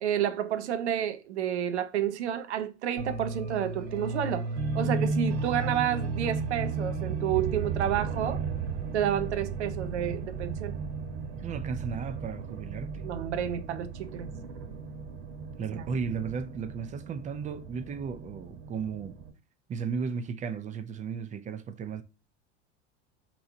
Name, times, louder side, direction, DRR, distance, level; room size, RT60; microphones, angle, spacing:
voice 1, 0.0-4.5 4.7-8.4 8.9-10.7 13.0-14.3 15.8-15.9, right 10 dB, 85° right, 0.6 m, -30 dB
sound 1, 3.0-19.3, right 4 dB, 55° right, 1.0 m, -34 dB
voice 2, 11.4-13.1 15.6-19.2 19.7-22.0, right 5 dB, 25° right, 0.4 m, -35 dB
3.8 x 2.9 x 2.6 m
hypercardioid pair, 85°, 34 cm